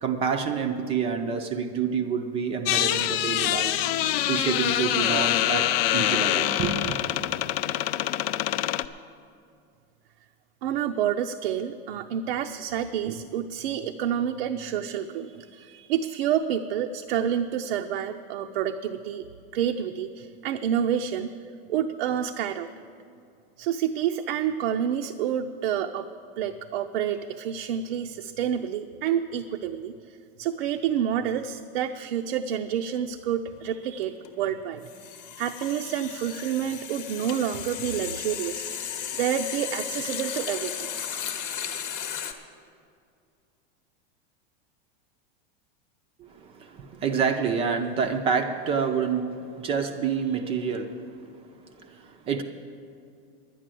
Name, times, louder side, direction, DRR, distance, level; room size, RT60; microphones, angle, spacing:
voice 1, 0.0-3.7 4.3-5.7 5.9-7.0 46.2-51.1 51.8-52.4, right 6 dB, 20° right, 6 dB, 0.5 m, -28 dB
sound 1, 2.7-8.9, left 13 dB, 85° left, 0.5 m, -25 dB
voice 2, 10.6-19.2 19.5-21.3 21.7-22.7 23.6-26.1 26.4-29.9 30.4-34.8 35.4-38.6 39.1-40.9, right 9 dB, 75° right, 5 dB, 0.6 m, -28 dB
sound 2, 33.5-33.7 34.0-42.3, left 8 dB, 35° left, 0.9 m, -35 dB
10.5 x 10.0 x 7.6 m, 2.4 s
supercardioid pair, 165°, 30 cm